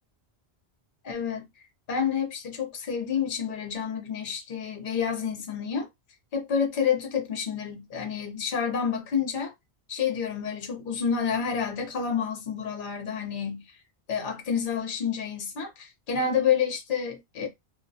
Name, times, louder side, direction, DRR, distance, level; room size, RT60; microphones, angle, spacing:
voice 1, 1.0-1.4 1.9-5.9 6.3-9.5 9.9-13.6 14.1-17.5, left 7 dB, 55° left, 0.8 m, -29 dB
2.3 x 2.1 x 2.6 m
omnidirectional pair, 1.1 m